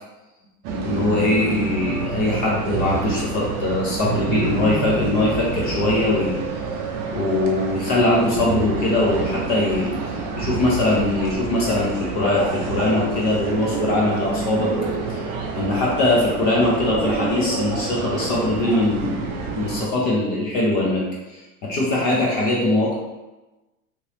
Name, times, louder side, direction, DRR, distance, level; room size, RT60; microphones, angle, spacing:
sound 1, 0.6-19.9, right 4 dB, 45° right, 0.5 m, -28 dB
voice 1, 0.8-6.4 7.1-9.9 10.4-14.7 15.1-15.3 15.5-21.0 21.3-22.9, left 2 dB, 25° left, -4 dB, 0.3 m, -21 dB
2.9 x 2.8 x 3.1 m, 1.1 s
supercardioid pair, 155°, 44 cm